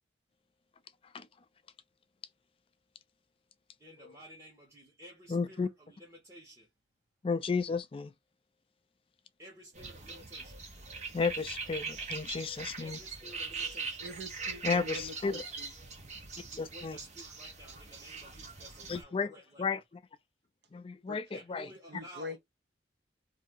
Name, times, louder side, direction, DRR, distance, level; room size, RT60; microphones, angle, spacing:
voice 1, 3.8-6.7 9.4-10.6 12.8-14.0 16.5-19.8 21.3-22.4, equal, 15° right, 1.2 m, -53 dB
voice 2, 5.3-5.7 7.2-8.1 11.1-13.0 14.6-15.4 16.6-17.0 18.9-19.3 19.6-20.0 20.7-21.7, left 4 dB, 30° left, 0.3 m, -33 dB
sound 1, 9.7-19.0, right 4 dB, 40° right, 0.9 m, -41 dB
voice 3, 14.0-15.7 21.1-21.2 21.9-22.4, left 2 dB, 60° right, 0.8 m, -44 dB
2.7 x 2.7 x 3.6 m
head